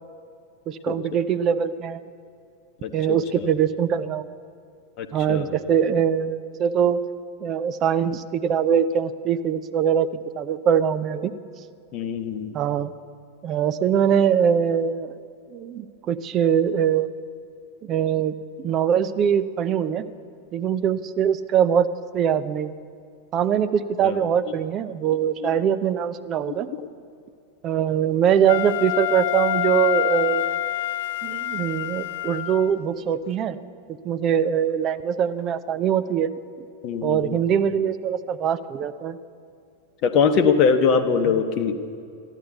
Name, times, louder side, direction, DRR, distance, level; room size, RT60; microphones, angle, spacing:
voice 1, 0.7-2.0 2.9-4.3 5.1-7.0 7.4-10.1 10.4-11.3 12.5-12.9 13.4-15.1 15.5-17.1 17.8-20.1 20.5-21.9 22.1-22.7 23.3-26.7 27.6-30.6 31.2-33.6 34.0-36.3 37.0-39.2 41.3-41.4, right 8 dB, 35° right, 12 dB, 0.6 m, -22 dB
voice 2, 5.0-5.5 11.9-12.5 24.0-24.1 36.8-37.3 40.0-41.8, left 6 dB, 45° left, 6 dB, 0.9 m, -21 dB
Wind instrument woodwind instrument, 28.5-32.8, left 13 dB, 60° left, 0.4 m, -26 dB
13.0 x 9.9 x 8.2 m, 2.3 s
figure-of-eight pair, 90°, 0 cm